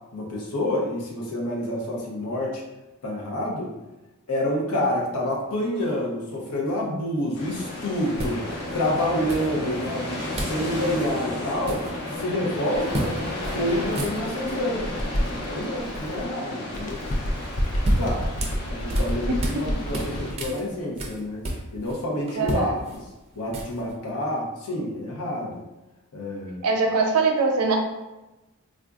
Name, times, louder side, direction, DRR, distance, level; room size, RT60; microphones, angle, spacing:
voice 1, 0.1-2.6 3.0-3.7 4.3-8.4 8.7-11.8 12.2-13.1 13.5-15.0 15.5-17.0 18.0-18.2 18.7-21.4 21.7-23.0 23.4-25.6 26.1-26.6, left 1 dB, 80° left, -2 dB, 0.8 m, -28 dB
sound 1, 7.3-20.3, left 1 dB, 50° left, 0.9 m, -33 dB
sound 2, 7.5-7.6 8.2-8.8 9.3-9.9 10.4-10.6 10.9-11.1 11.4-12.3 12.9-13.1 13.4-13.6 13.8-14.6 17.4-19.6 19.9-22.0 22.3-23.9, right 1 dB, 30° right, 0.4 m, -31 dB
Bird, 12.7-16.3 16.7-20.5, equal, 35° left, 0.4 m, -31 dB
voice 2, 22.4-22.7 26.6-27.8, right 4 dB, 80° right, 3 dB, 0.5 m, -22 dB
3.6 x 2.5 x 2.3 m, 1.0 s
head